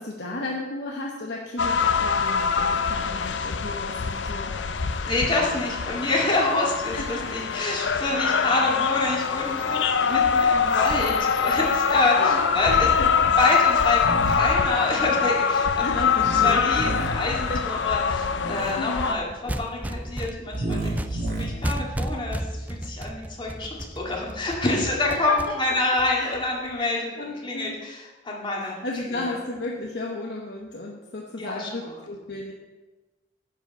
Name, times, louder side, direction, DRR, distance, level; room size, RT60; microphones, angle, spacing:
voice 1, 0.0-4.5 6.9-7.3 8.2-8.5 10.1-10.2 12.1-13.1 15.8-16.8 17.4-17.6 18.5-19.1 25.1-25.3 26.1-26.4 26.8-27.8 28.6-32.5, left 2 dB, 65° left, -2 dB, 1.1 m, -34 dB
sound 1, 1.6-19.1, left 6 dB, 85° left, 0.5 m, -24 dB
voice 2, 5.0-12.9 13.4-15.9 16.4-28.7 29.1-29.3 31.4-32.0, left 2 dB, 25° left, -2 dB, 2.2 m, -27 dB
sound 2, 14.0-14.4 16.1-17.1 18.3-18.7 20.5-21.4, right 2 dB, 60° right, 2.0 m, -30 dB
sound 3, 19.3-26.7, right 1 dB, 10° right, 0.3 m, -34 dB
10.0 x 4.9 x 7.1 m, 1.2 s
head